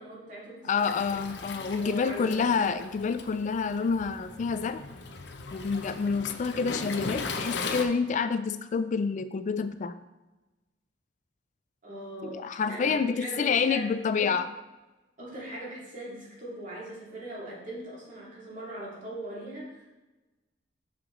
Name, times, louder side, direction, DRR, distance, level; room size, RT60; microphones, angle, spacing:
voice 1, 0.0-0.9 1.8-2.6 11.8-14.3 15.2-19.9, right 1 dB, 45° right, -5 dB, 2.6 m, -40 dB
voice 2, 0.6-4.8 5.5-9.9 12.2-14.5, left 5 dB, 45° left, 11 dB, 0.3 m, -28 dB
Waves surf, 0.8-7.8, left 4 dB, 70° left, 0.7 m, -38 dB
6.8 x 6.0 x 3.8 m, 1.1 s
head